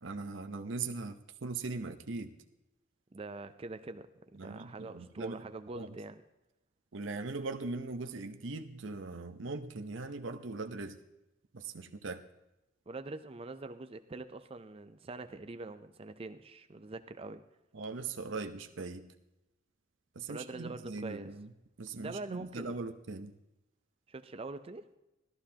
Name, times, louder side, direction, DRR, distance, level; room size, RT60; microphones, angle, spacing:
voice 1, 0.0-2.3 4.4-5.4 5.8-5.9 6.9-11.0 11.5-12.2 17.7-19.1 20.1-21.5 21.8-23.3, right 3 dB, 75° right, 5 dB, 0.8 m, -40 dB
voice 2, 3.1-6.2 12.9-17.4 20.3-21.4 21.9-22.7 24.1-24.9, right 3 dB, 30° right, 10 dB, 0.5 m, -44 dB
18.5 x 14.0 x 2.8 m, 0.96 s
head